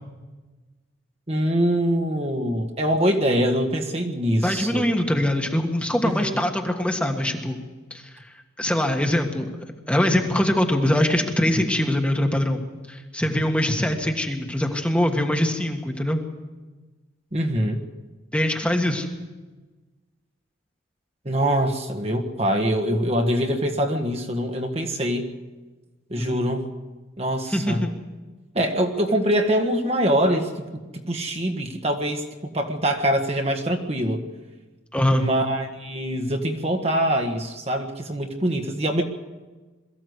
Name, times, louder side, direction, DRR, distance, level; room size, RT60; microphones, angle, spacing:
voice 1, 1.3-4.9 6.0-6.4 17.3-17.8 21.2-25.3 26.1-26.6 27.2-27.8 28.5-30.5 30.9-32.2 32.5-34.2 35.1-39.0, equal, 30° right, 3 dB, 1.5 m, -24 dB
voice 2, 4.4-7.6 7.9-9.5 9.9-12.6 12.9-16.2 18.3-19.1 26.1-26.4 27.5-27.9 34.9-35.3, left 1 dB, 5° left, 3 dB, 1.5 m, -23 dB
22.5 x 14.5 x 8.1 m, 1.3 s
head